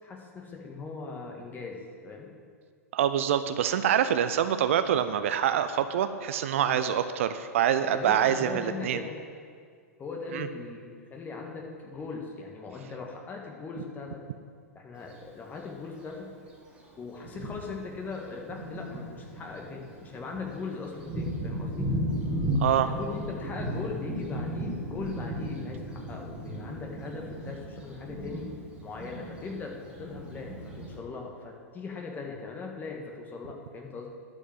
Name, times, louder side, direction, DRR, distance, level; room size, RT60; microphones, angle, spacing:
voice 1, 0.0-2.3 6.6-6.9 7.8-9.2 10.0-14.2 14.7-16.3 17.0-21.9 22.8-28.5 28.8-34.1, left 4 dB, 20° left, 0 dB, 1.8 m, -39 dB
voice 2, 2.9-9.0 10.3-10.5 22.6-22.9, right 9 dB, 60° right, 11 dB, 0.5 m, -25 dB
Thunder, 15.0-15.1 16.1-16.2 16.7-16.8 17.2-31.0, equal, 10° right, 2.2 m, -35 dB
11.5 x 5.3 x 7.7 m, 2.1 s
figure-of-eight pair, 100°, 8 cm